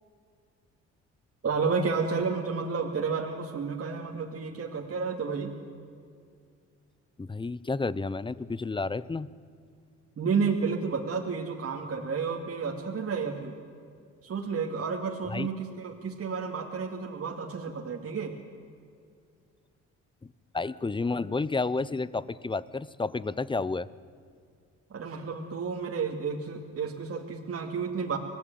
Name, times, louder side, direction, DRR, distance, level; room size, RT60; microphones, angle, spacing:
voice 1, 1.4-5.5 10.2-13.5 14.2-18.3 24.9-28.2, right 5 dB, 50° right, 0 dB, 2.8 m, -31 dB
voice 2, 7.2-9.3 15.3-15.5 20.2-23.9, left 3 dB, 15° left, 19 dB, 0.8 m, -31 dB
26.0 x 19.0 x 9.3 m, 2.2 s
cardioid pair, 90°, 30 cm